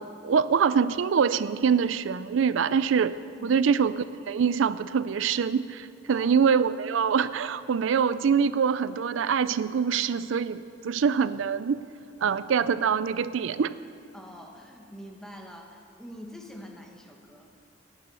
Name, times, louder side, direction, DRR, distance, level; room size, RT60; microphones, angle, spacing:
voice 1, 0.0-3.1 3.4-11.8 12.2-13.8, right 6 dB, 80° right, 15 dB, 0.4 m, -24 dB
voice 2, 6.1-6.5 12.2-12.7 14.1-17.5, equal, 5° left, 1 dB, 1.4 m, -45 dB
18.0 x 9.9 x 6.9 m, 2.6 s
head